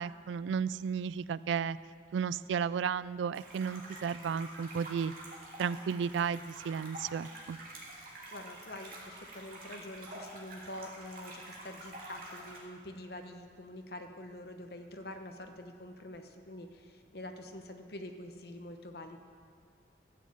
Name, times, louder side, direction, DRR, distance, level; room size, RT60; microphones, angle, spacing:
voice 1, 0.0-1.8 2.1-5.1 5.6-7.6, right 7 dB, 80° right, 18 dB, 0.3 m, -33 dB
sound 1, 3.3-12.6, right 1 dB, 50° right, 2.4 m, -48 dB
voice 2, 8.3-19.2, left 1 dB, 55° left, 6 dB, 0.9 m, -46 dB
13.0 x 7.4 x 7.7 m, 2.1 s
head